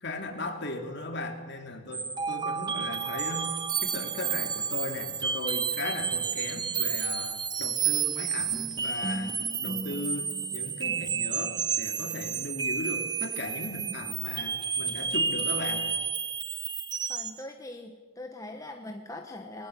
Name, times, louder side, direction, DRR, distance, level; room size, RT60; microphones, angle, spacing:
voice 1, 0.0-3.5 3.8-15.9, left 2 dB, 55° left, 4 dB, 2.6 m, -37 dB
sound 1, 1.9-17.4, right 6 dB, 20° right, 0.6 m, -31 dB
voice 2, 17.1-19.7, left 1 dB, 15° left, 3 dB, 1.2 m, -42 dB
21.0 x 20.0 x 6.9 m, 1.4 s
head